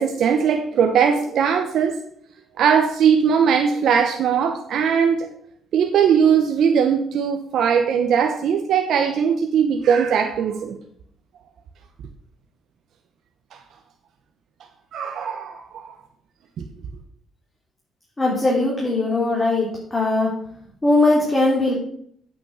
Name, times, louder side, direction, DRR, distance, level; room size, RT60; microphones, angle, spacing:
voice 1, 0.0-2.0 2.6-5.3 5.7-10.8 14.9-16.0 16.6-16.7, right 7 dB, 75° right, 4 dB, 1.0 m, -19 dB
voice 2, 18.2-20.3 20.8-21.7, left 2 dB, 20° left, -3 dB, 2.9 m, -19 dB
8.8 x 6.0 x 6.5 m, 0.66 s
cardioid pair, 90°, 0 cm